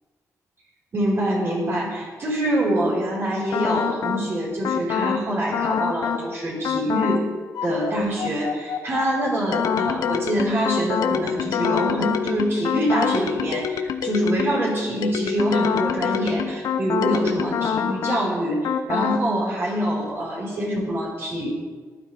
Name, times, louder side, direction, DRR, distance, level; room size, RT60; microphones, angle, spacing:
voice 1, 0.9-7.3 7.6-21.5, equal, 45° right, -4 dB, 5.0 m, -25 dB
sound 1, 3.5-4.2 4.6-5.2 5.5-6.2 6.6-7.2 7.6-14.6 15.0-18.2 18.6-19.2, left 7 dB, 85° left, 0.9 m, -25 dB
19.0 x 12.0 x 3.6 m, 1.5 s
cardioid pair, 125°, 6 cm